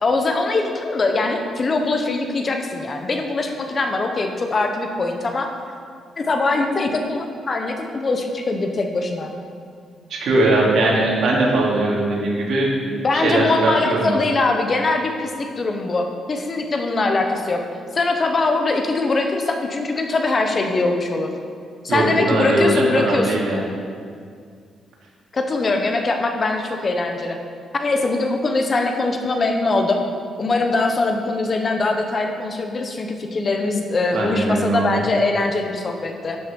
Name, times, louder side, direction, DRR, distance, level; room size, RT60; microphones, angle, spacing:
voice 1, 0.0-5.5 6.2-9.3 13.0-17.6 17.9-21.3 21.8-23.4 25.3-27.4 27.8-30.0 30.4-36.4, left 3 dB, 35° left, 4 dB, 1.2 m, -22 dB
voice 2, 10.1-12.7 13.1-14.2 21.9-23.6 34.1-35.0, right 2 dB, 70° right, -3 dB, 3.0 m, -20 dB
12.5 x 7.5 x 5.4 m, 2.2 s
cardioid pair, 115°, 0 cm